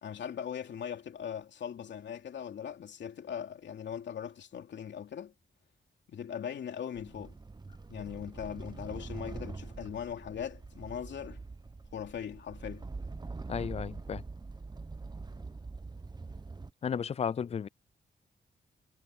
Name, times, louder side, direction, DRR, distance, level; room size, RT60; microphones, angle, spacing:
voice 1, 0.0-5.3 6.1-7.4 7.9-11.4 11.9-12.9, left 8 dB, 80° left, 2.9 m, -40 dB
sound 1, 7.0-16.7, right 3 dB, 25° right, 1.0 m, -44 dB
voice 2, 13.5-14.2 16.8-17.7, left 7 dB, 35° left, 0.3 m, -33 dB
cardioid pair, 85°, 18 cm